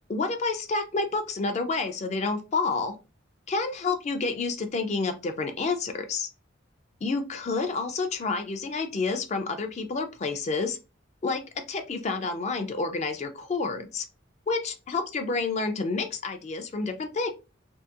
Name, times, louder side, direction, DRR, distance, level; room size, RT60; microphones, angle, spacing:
voice 1, 0.1-2.9 3.5-6.3 7.0-10.8 11.2-11.4 11.7-14.1 14.5-17.3, left 3 dB, 35° left, 7 dB, 0.3 m, -29 dB
2.7 x 2.4 x 2.3 m, 0.29 s
head